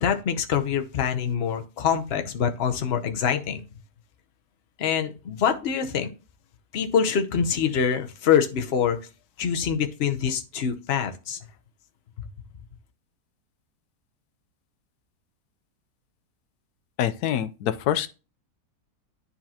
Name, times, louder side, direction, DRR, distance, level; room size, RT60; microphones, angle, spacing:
voice 1, 0.0-3.6 4.8-6.1 6.7-9.0 9.4-11.4, left 7 dB, 50° left, 0.9 m, -25 dB
voice 2, 17.0-18.1, left 10 dB, 80° left, 1.2 m, -25 dB
10.0 x 4.2 x 2.8 m
omnidirectional pair, 1.7 m